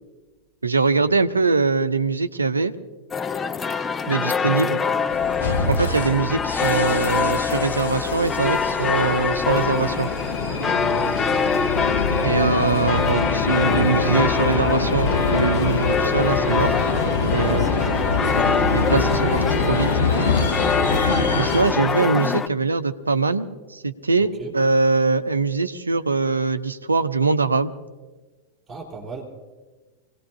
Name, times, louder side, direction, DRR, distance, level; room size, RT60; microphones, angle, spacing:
voice 1, 0.6-2.7 4.1-4.8 5.7-10.1 12.2-16.8 17.3-17.7 18.7-19.9 21.4-27.7, right 4 dB, 80° right, 11 dB, 0.7 m, -22 dB
sound 1, 3.1-22.5, left 6 dB, 20° left, 0.5 m, -24 dB
sound 2, 5.1-21.6, left 3 dB, 65° left, 3.2 m, -25 dB
voice 2, 10.8-11.2 17.4-17.8 18.1-18.4 24.2-24.5 28.7-29.2, right 5 dB, 20° right, -1 dB, 3.5 m, -35 dB
25.0 x 18.5 x 2.8 m, 1.3 s
figure-of-eight pair, 90°, 0 cm